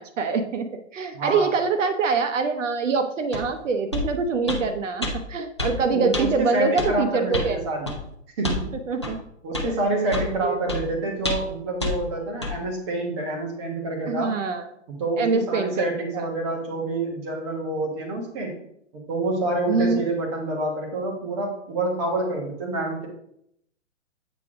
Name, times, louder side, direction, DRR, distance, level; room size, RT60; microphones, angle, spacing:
voice 1, 0.0-7.6 8.9-9.2 9.6-9.7 10.4-10.6 14.1-14.6 15.2-16.3 19.7-20.0, right 4 dB, 75° right, 8 dB, 0.9 m, -24 dB
voice 2, 1.1-1.5 5.9-7.9 8.4-8.7 9.4-14.3 14.9-18.5 18.9-23.1, right 2 dB, 20° right, 0 dB, 1.3 m, -27 dB
sound 1, 3.3-3.5 3.9-4.1 4.5-4.6 5.0-5.1 5.6-5.8 6.1-6.3 6.8-6.9 7.3-7.5 7.9-8.0 8.4-8.6 9.0-9.1 9.5-9.7 10.1-10.3 10.7-10.8 11.2-11.5 11.8-11.9 12.4-12.5, left 2 dB, 25° left, 0.4 m, -27 dB
8.3 x 3.5 x 4.8 m, 0.74 s
hypercardioid pair, 170°, 38 cm